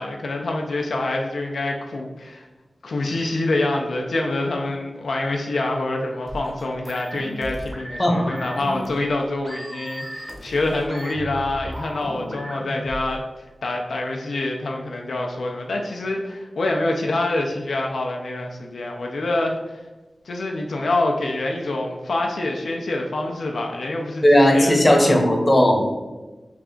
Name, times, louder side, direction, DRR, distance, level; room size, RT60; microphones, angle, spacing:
voice 1, 0.0-2.5 2.8-19.6 20.3-25.1, left 2 dB, 90° left, 1 dB, 0.4 m, -26 dB
sound 1, 6.3-13.2, equal, 25° right, 0.7 m, -35 dB
voice 2, 8.0-8.3 24.2-25.9, equal, 25° left, 1 dB, 0.7 m, -16 dB
3.2 x 2.4 x 3.6 m, 1.2 s
wide cardioid pair, 75°, 0 cm